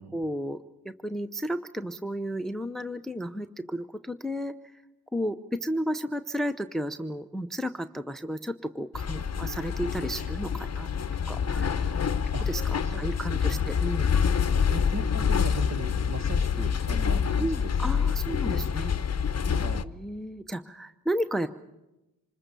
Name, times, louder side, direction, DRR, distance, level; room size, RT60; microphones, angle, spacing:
voice 1, 0.1-4.5 5.1-10.9 11.3-12.0 12.5-14.1 17.4-18.9 19.8-21.5, equal, ahead, 11 dB, 0.7 m, -33 dB
sound 1, 8.9-19.8, left 7 dB, 40° left, 0.9 m, -27 dB
voice 2, 12.8-13.7 14.7-17.7 19.4-19.9, right 3 dB, 45° right, 8 dB, 1.8 m, -39 dB
26.5 x 21.0 x 6.8 m, 0.99 s
cardioid pair, 85°, 39 cm